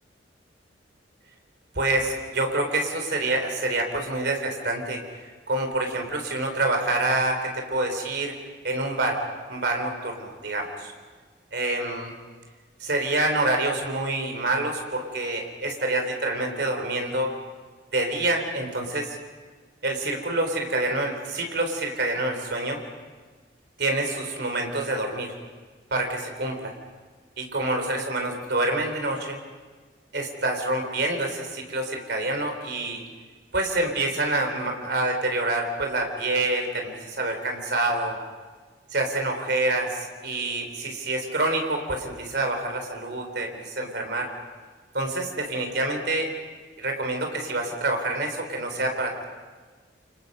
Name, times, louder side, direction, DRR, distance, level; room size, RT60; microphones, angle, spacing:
voice 1, 1.8-5.0 5.5-8.3 8.6-9.2 9.5-10.9 11.5-12.1 12.8-17.3 17.9-19.2 19.8-22.8 23.8-25.4 25.9-26.7 27.4-29.4 30.1-33.0 33.5-38.2 38.9-44.3 44.9-46.3 46.8-49.3, right 2 dB, 60° right, 4 dB, 3.8 m, -27 dB
28.5 x 25.5 x 5.4 m, 1.4 s
head